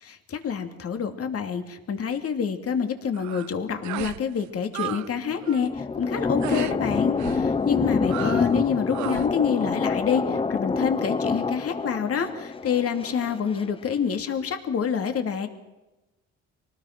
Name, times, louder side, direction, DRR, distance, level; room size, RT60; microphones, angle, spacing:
voice 1, 0.3-15.5, left 7 dB, 50° left, 6 dB, 2.7 m, -27 dB
sound 1, 3.1-3.5 3.8-4.2 4.5-5.1 5.3-5.7 6.4-6.8 7.2-7.5 8.0-8.6 8.9-9.3, right 15 dB, 70° right, 0.7 m, -34 dB
sound 2, 5.2-13.6, left 4 dB, 20° left, 0.6 m, -27 dB
25.0 x 19.0 x 6.1 m, 1.0 s
cardioid pair, 90°, 30 cm